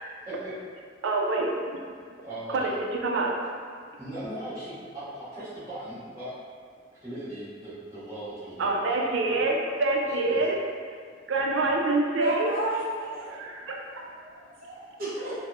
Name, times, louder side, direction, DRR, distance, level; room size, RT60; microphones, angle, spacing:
voice 1, 1.0-1.5 2.5-2.7 3.0-3.5 8.6-10.6 11.3-12.5 13.3-13.8, right 2 dB, 90° right, -1 dB, 0.4 m, -26 dB
voice 2, 2.2-2.8 4.0-6.3 7.0-8.7 10.2-10.4, right 1 dB, 15° right, -13 dB, 1.0 m, -38 dB
voice 3, 12.2-13.4 13.9-15.3, right 2 dB, 50° right, -9 dB, 0.7 m, -33 dB
3.4 x 2.0 x 2.4 m, 2.1 s
head